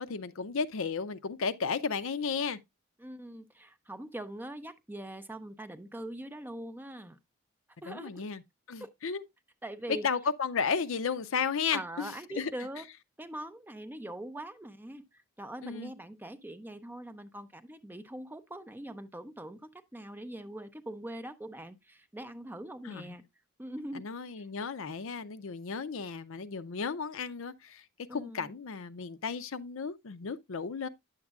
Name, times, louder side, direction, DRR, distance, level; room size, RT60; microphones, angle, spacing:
voice 1, 0.0-2.6 7.9-8.4 8.7-9.2 9.9-12.5 15.6-15.9 22.8-23.1 23.9-27.8 28.1-30.9, left 5 dB, 60° left, 0.5 m, -34 dB
voice 2, 3.0-7.2 7.8-8.2 8.8-8.9 9.6-10.1 11.7-12.9 13.2-23.2 23.6-24.1 28.1-28.5, right 1 dB, 10° right, 0.5 m, -42 dB
9.7 x 7.3 x 2.4 m
head